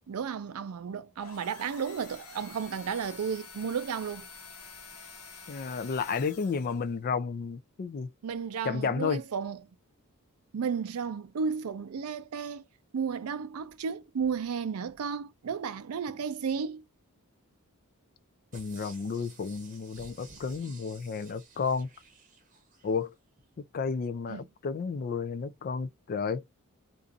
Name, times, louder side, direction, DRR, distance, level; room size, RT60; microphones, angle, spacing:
voice 1, 0.1-4.3 8.2-9.6 10.5-12.6 12.9-16.8 24.3-24.4, right 6 dB, 75° right, 0.4 m, -33 dB
sound 1, 1.1-7.0, left 5 dB, 85° left, 0.9 m, -48 dB
voice 2, 5.5-8.1 8.6-9.2 18.5-21.9 22.8-23.1 23.7-26.4, left 5 dB, 40° left, 0.3 m, -32 dB
sound 2, 18.5-23.0 23.4-23.5, right 4 dB, 35° right, 0.8 m, -53 dB
2.5 x 2.4 x 2.4 m
head